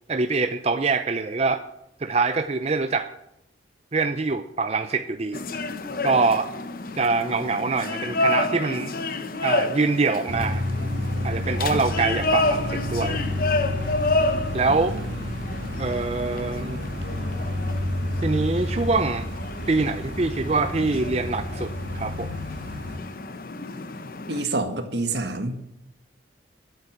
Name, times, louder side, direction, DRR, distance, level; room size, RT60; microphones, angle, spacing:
voice 1, 0.1-1.6 2.0-3.1 3.9-5.4 6.0-6.5 7.0-8.9 9.4-10.6 11.2-13.2 14.5-14.9 15.8-16.8 18.2-19.3 19.7-22.3, right 3 dB, 35° right, 8 dB, 0.5 m, -24 dB
sound 1, 5.3-24.4, left 2 dB, 50° left, 0.9 m, -30 dB
sound 2, 10.3-23.0, left 1 dB, 90° right, 1.7 m, -30 dB
voice 2, 14.7-15.1 24.3-25.5, right 2 dB, 65° right, 7 dB, 1.7 m, -28 dB
12.0 x 8.1 x 9.0 m, 0.81 s
head